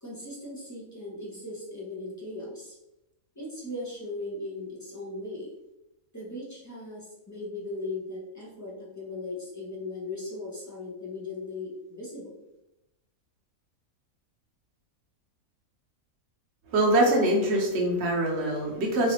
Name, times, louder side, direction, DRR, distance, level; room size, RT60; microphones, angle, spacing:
voice 1, 0.0-2.8 3.4-5.5 6.1-12.4, left 2 dB, 25° left, -6 dB, 0.4 m, -38 dB
voice 2, 16.7-19.1, right 1 dB, 55° right, 0 dB, 1.0 m, -24 dB
3.1 x 2.5 x 2.9 m, 0.90 s
omnidirectional pair, 1.5 m